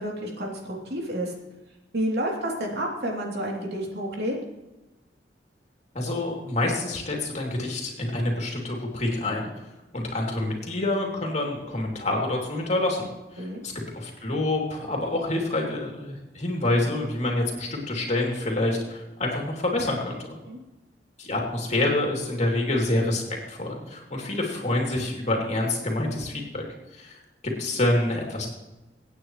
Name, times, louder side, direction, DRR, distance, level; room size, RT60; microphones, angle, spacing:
voice 1, 0.0-1.3 1.9-4.3 13.4-13.6 20.4-20.6, right 1 dB, 65° right, -1 dB, 3.1 m, -30 dB
voice 2, 5.9-9.5 9.9-13.1 13.3-20.2 21.2-26.6 26.9-27.2 27.6-28.5, left 1 dB, 40° left, 0 dB, 2.9 m, -27 dB
24.5 x 9.1 x 3.2 m, 1.1 s
head